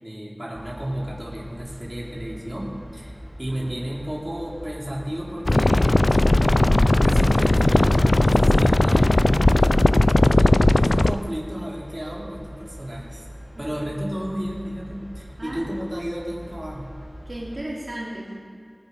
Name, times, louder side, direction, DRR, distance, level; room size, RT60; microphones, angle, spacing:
voice 1, 0.0-9.8 10.2-13.2 13.6-16.9, equal, 20° right, -4 dB, 3.5 m, -33 dB
sound 1, 0.5-17.6, equal, ahead, 4.8 m, -42 dB
voice 2, 3.5-3.8 8.8-9.2 13.5-13.7 15.4-15.6 17.3-18.4, right 1 dB, 60° right, -5 dB, 2.9 m, -35 dB
sound 2, 5.5-11.1, left 1 dB, 50° left, 0.4 m, -17 dB
21.0 x 9.3 x 5.6 m, 2.2 s
wide cardioid pair, 45°, 0 cm